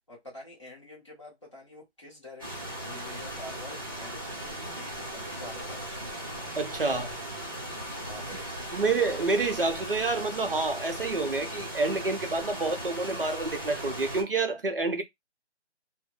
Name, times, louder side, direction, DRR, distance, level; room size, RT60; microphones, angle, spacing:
voice 1, 0.1-6.2 8.1-8.9, left 2 dB, 25° left, 1.1 m, -47 dB
sound 1, 2.4-14.2, right 1 dB, 20° right, 0.7 m, -38 dB
voice 2, 6.5-7.1 8.7-15.0, right 3 dB, 50° right, 0.5 m, -28 dB
2.2 x 2.0 x 3.7 m
hypercardioid pair, 175°, 35 cm